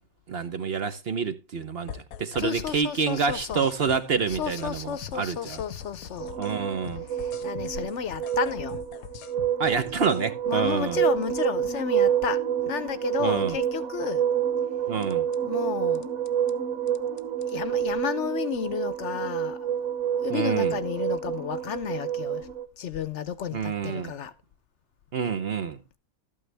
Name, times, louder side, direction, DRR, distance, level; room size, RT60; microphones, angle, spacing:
voice 1, 0.3-5.6 6.4-7.1 9.6-11.0 13.2-13.6 14.9-15.3 20.3-20.8 23.5-24.1 25.1-25.8, right 6 dB, 50° right, 0.9 m, -28 dB
sound 1, 1.9-2.8 3.0-6.6 6.8-10.2 15.0-15.4 15.9-16.5 16.9-17.5, left 9 dB, 85° left, 1.2 m, -43 dB
voice 2, 2.4-3.7 4.3-6.4 7.2-8.8 10.5-14.2 15.4-16.1 17.4-19.7 20.2-22.5 22.8-24.3, left 8 dB, 65° left, 0.9 m, -32 dB
sound 2, 6.2-22.7, right 9 dB, 80° right, 1.4 m, -28 dB
12.5 x 8.8 x 3.3 m
omnidirectional pair, 1.5 m